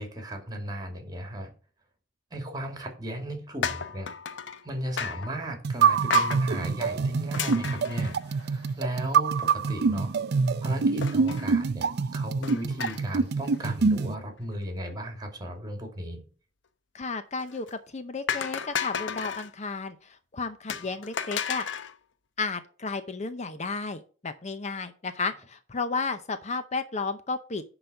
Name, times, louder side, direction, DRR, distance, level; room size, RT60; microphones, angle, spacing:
voice 1, 0.0-1.5 2.3-4.4 4.6-10.1 10.6-16.2, right 1 dB, 20° right, 4 dB, 2.5 m, -36 dB
sound 1, 3.6-4.6 5.0-5.3 6.1-6.4 7.3-8.7 9.1-9.2 9.4-9.5 11.0-11.5 12.4-13.2 13.5-13.8 17.4-17.7 18.3-19.5 20.7-21.9, left 7 dB, 85° left, 0.8 m, -33 dB
sound 2, 5.6-14.1, right 5 dB, 60° right, 0.5 m, -25 dB
voice 2, 16.9-21.6 22.4-27.6, left 4 dB, 40° left, 10 dB, 0.7 m, -33 dB
10.5 x 4.0 x 6.6 m, 0.38 s
head